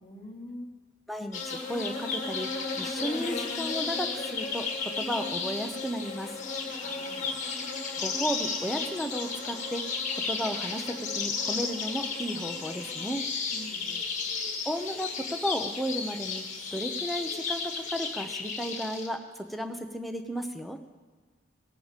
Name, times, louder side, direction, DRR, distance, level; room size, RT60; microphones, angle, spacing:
voice 1, 0.0-0.7 6.8-7.3 13.5-14.1, left 1 dB, 25° left, 0 dB, 1.6 m, -44 dB
voice 2, 1.1-6.3 8.0-13.2 14.6-16.4 16.7-20.8, equal, ahead, 5 dB, 0.7 m, -34 dB
sound 1, 1.3-19.1, left 4 dB, 40° left, 1.6 m, -33 dB
18.0 x 7.7 x 5.1 m, 1.4 s
head